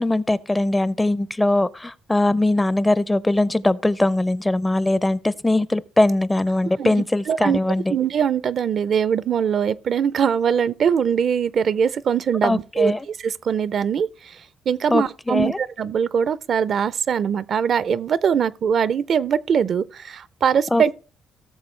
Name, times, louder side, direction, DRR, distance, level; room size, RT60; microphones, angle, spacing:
voice 1, 0.0-8.0 12.4-13.1 14.9-15.6 20.7-21.0, left 2 dB, 15° left, 0.4 m, -21 dB
voice 2, 7.3-7.6 7.9-12.9 13.2-14.1 14.7-21.0, right 7 dB, 60° right, 0.4 m, -22 dB
17.5 x 6.8 x 3.2 m
cardioid pair, 90°, 0 cm